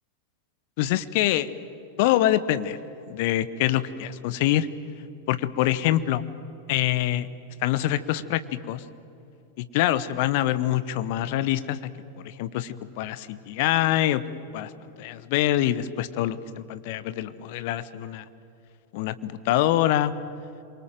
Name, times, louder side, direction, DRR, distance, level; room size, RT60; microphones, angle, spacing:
voice 1, 0.8-1.5 2.0-2.8 3.1-4.7 5.3-6.2 6.7-7.3 7.6-8.4 8.7-8.8 9.6-11.9 12.2-14.2 14.5-14.7 15.0-18.2 18.9-20.1, left 13 dB, 50° left, 14 dB, 1.0 m, -25 dB
27.5 x 24.0 x 7.6 m, 2.8 s
figure-of-eight pair, 90°, 0 cm